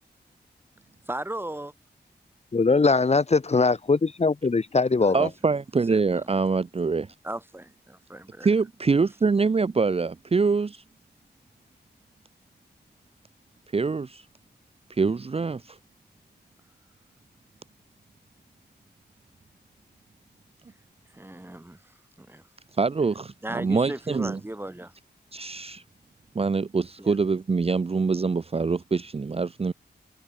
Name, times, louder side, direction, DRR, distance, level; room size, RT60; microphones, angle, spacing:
voice 1, 1.1-1.7 5.0-5.3 5.9-6.2 7.2-8.5 21.1-21.8 22.2-22.4 23.4-24.9 27.0-27.1, right 1 dB, 10° right, 1.5 m, -36 dB
voice 2, 2.5-5.3, left 4 dB, 35° left, 1.3 m, -21 dB
voice 3, 5.1-7.1 8.4-10.8 13.7-14.2 15.0-15.8 22.8-24.4 25.3-25.8 26.3-29.7, right 4 dB, 35° right, 0.6 m, -24 dB
wide cardioid pair, 95°, 18 cm